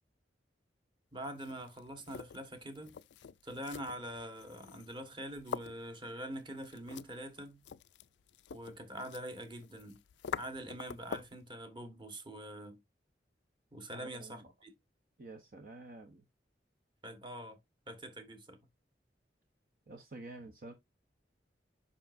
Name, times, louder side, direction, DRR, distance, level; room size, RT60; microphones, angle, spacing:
voice 1, 1.1-2.9 3.4-7.6 8.5-10.0 10.4-12.8 13.7-14.7 17.0-17.6 17.9-18.6, right 1 dB, 25° right, 1.5 m, -44 dB
sound 1, 1.3-11.5, left 6 dB, 80° left, 0.4 m, -47 dB
voice 2, 13.9-14.5 15.2-16.2 19.9-20.7, right 2 dB, 50° right, 0.9 m, -49 dB
7.0 x 5.7 x 2.6 m
head